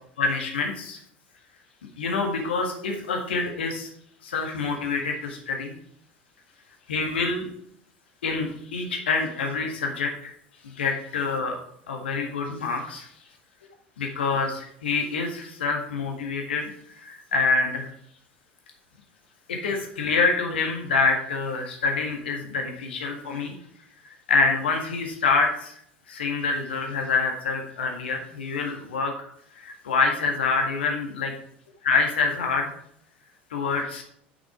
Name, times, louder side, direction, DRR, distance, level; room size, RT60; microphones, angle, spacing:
voice 1, 0.2-1.0 2.0-3.9 4.2-5.7 6.9-7.5 8.2-10.3 10.8-11.6 11.9-13.1 14.0-16.7 17.0-17.9 19.5-23.5 24.3-25.7 26.1-29.1 29.6-31.3 31.8-32.7 33.5-34.0, left 4 dB, 65° left, 2 dB, 1.6 m, -26 dB
7.1 x 6.3 x 4.8 m, 0.67 s
figure-of-eight pair, 75°, 6 cm